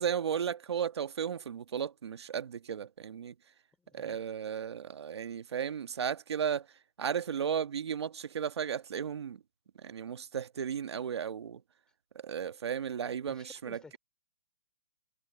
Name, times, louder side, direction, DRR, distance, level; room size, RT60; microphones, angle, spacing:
voice 1, 0.0-3.3 4.0-6.6 7.0-9.4 9.8-11.6 12.2-13.8, right 8 dB, 65° right, 1.3 m, -34 dB
voice 2, 3.8-4.3 13.3-14.0, left 4 dB, 5° left, 4.2 m, -54 dB
hypercardioid pair, 170°, 15 cm